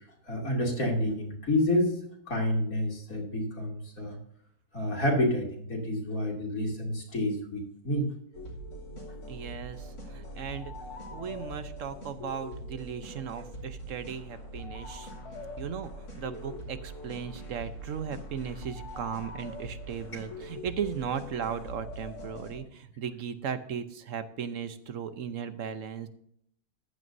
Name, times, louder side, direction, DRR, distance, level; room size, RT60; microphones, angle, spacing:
voice 1, 0.3-2.0 2.3-4.2 4.7-8.1, left 1 dB, 65° left, -1 dB, 3.2 m, -29 dB
sound 1, 8.3-22.6, equal, 90° left, 3.5 m, -42 dB
voice 2, 9.3-15.1 15.6-26.1, right 7 dB, 60° right, 10 dB, 1.2 m, -37 dB
15.0 x 11.0 x 2.7 m, 0.68 s
omnidirectional pair, 1.6 m